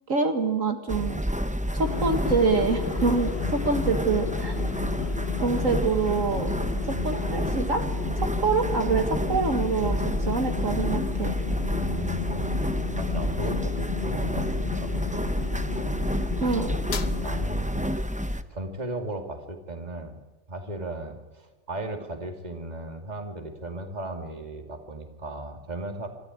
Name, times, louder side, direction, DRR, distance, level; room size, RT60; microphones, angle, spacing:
voice 1, 0.1-1.2 1.7-4.5 5.4-6.5 7.0-7.8 8.2-11.4 16.4-16.7, right 4 dB, 70° right, 5 dB, 2.1 m, -26 dB
sound 1, 0.9-18.4, equal, 5° right, 0.8 m, -29 dB
sound 2, 1.8-17.5, left 9 dB, 55° left, 1.0 m, -34 dB
voice 2, 3.4-3.8 6.9-7.1 11.8-12.5 12.9-15.3 17.2-18.0 18.2-20.2 20.5-26.1, right 2 dB, 30° right, 4 dB, 2.6 m, -36 dB
26.0 x 14.0 x 9.7 m, 1.2 s
omnidirectional pair, 1.4 m